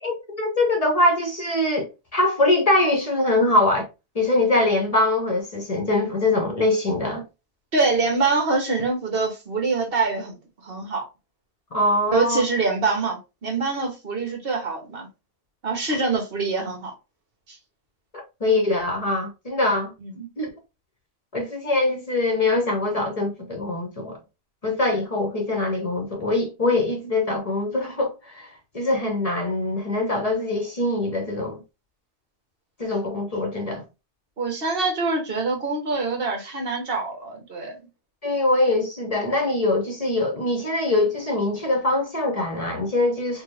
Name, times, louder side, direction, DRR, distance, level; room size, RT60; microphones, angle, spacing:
voice 1, 0.0-3.8 4.1-7.2 11.7-12.4 18.1-19.9 20.4-20.5 21.3-24.2 24.6-28.5 28.7-31.6 32.8-33.8 38.2-43.4, left 2 dB, 35° left, 0.8 m, -23 dB
voice 2, 7.7-10.4 10.6-11.0 12.1-15.1 15.6-16.9 17.5-17.6 20.0-20.3 34.4-37.8, right 3 dB, 45° right, 1.3 m, -25 dB
4.3 x 2.3 x 3.2 m
omnidirectional pair, 1.4 m